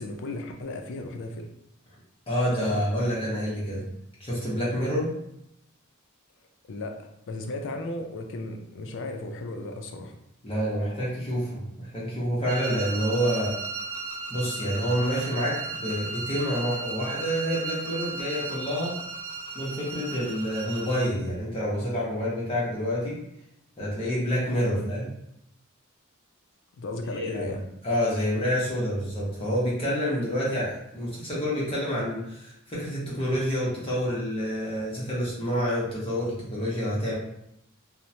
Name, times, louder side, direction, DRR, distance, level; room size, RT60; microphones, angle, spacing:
voice 1, 0.0-1.5 2.6-2.8 6.7-10.1 24.6-24.9 26.8-27.6, left 2 dB, 60° left, 4 dB, 0.4 m, -35 dB
voice 2, 2.3-3.8 4.2-5.1 10.4-13.5 14.3-19.0 19.5-23.2 23.8-25.1 27.1-27.6 27.8-37.1, equal, 25° left, -7 dB, 0.7 m, -28 dB
sound 1, 12.4-21.2, right 3 dB, 70° right, 0.5 m, -35 dB
2.9 x 2.0 x 2.6 m, 0.77 s
head